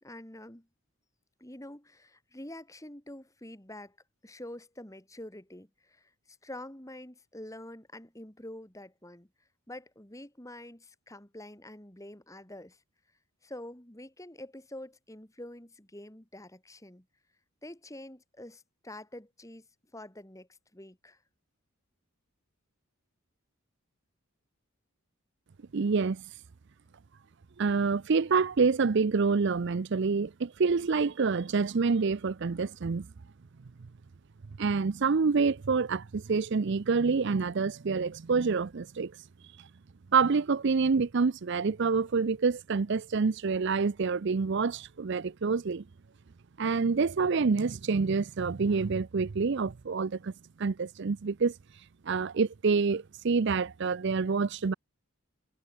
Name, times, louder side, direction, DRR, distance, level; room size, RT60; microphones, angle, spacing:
voice 1, 0.0-0.7 1.4-4.0 4.2-9.3 9.7-12.8 13.4-17.1 17.6-19.7 19.9-21.2, left 1 dB, 15° left, 2.1 m, -46 dB
voice 2, 25.7-26.2 27.6-33.1 34.6-39.1 40.1-45.8 46.6-50.3 50.6-51.5 52.1-54.7, right 4 dB, 50° right, 0.5 m, -27 dB
head